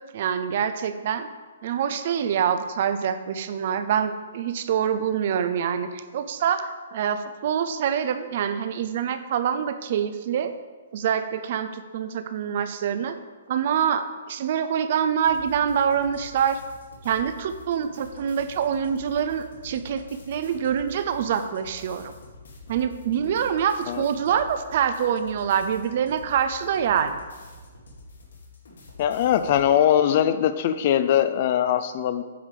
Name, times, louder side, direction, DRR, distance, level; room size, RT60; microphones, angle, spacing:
voice 1, 0.1-1.3 1.6-10.5 10.9-13.2 13.5-16.6 17.0-22.1 22.7-27.2, right 8 dB, 35° right, 10 dB, 0.4 m, -25 dB
sound 1, 15.2-29.7, left 3 dB, 90° left, 2.2 m, -47 dB
voice 2, 29.0-32.2, left 10 dB, 30° left, 10 dB, 0.4 m, -21 dB
8.6 x 4.9 x 5.2 m, 1.4 s
hypercardioid pair, 180°, 0 cm